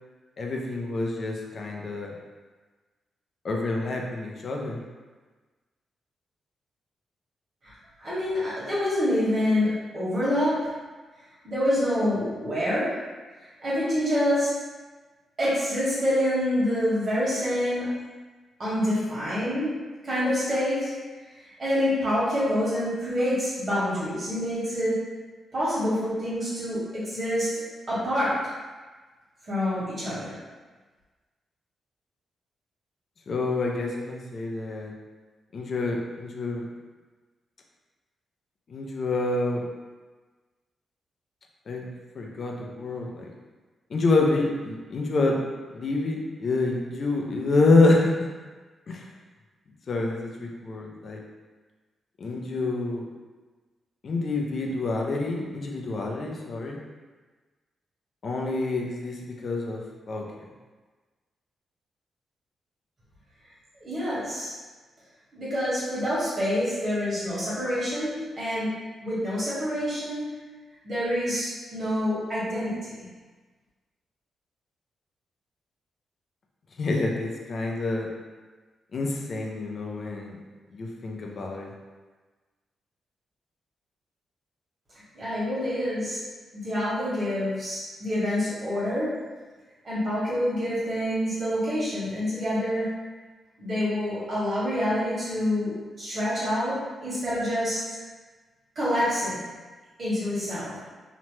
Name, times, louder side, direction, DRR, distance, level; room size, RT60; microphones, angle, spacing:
voice 1, 0.4-2.1 3.4-4.8 33.3-34.9 35.5-36.7 38.7-39.6 41.7-41.9 42.1-43.3 43.9-45.4 45.7-48.3 48.9-49.1 49.9-51.2 52.2-53.1 54.0-56.8 58.2-60.4 76.8-78.1 78.9-80.4 80.7-81.7, left 2 dB, 45° left, 0 dB, 0.4 m, -27 dB
voice 2, 8.0-10.5 11.4-12.9 13.6-14.5 15.4-17.9 18.6-19.7 20.0-20.9 21.3-25.0 25.5-27.5 27.9-28.3 29.4-30.4 63.7-64.5 65.3-68.7 69.0-70.2 70.8-72.9 85.1-86.2 86.5-89.1 89.8-92.9 93.6-96.7 97.0-98.0 98.7-99.4 100.0-100.8, equal, 40° right, -10 dB, 1.4 m, -27 dB
2.8 x 2.1 x 3.0 m, 1.3 s
wide cardioid pair, 145°, 0 cm